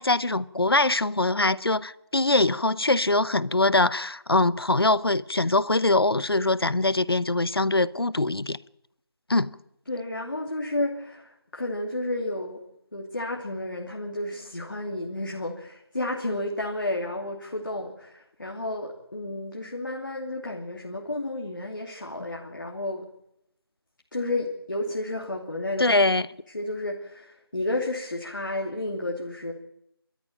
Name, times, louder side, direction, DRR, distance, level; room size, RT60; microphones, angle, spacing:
voice 1, 0.0-8.6 9.3-9.6 25.8-26.3, left 2 dB, 70° left, 0.8 m, -23 dB
voice 2, 9.9-12.6 12.9-23.1 24.1-25.9 26.5-29.5, left 1 dB, 50° left, 2.9 m, -31 dB
24.5 x 13.5 x 9.0 m
figure-of-eight pair, 170°, 13 cm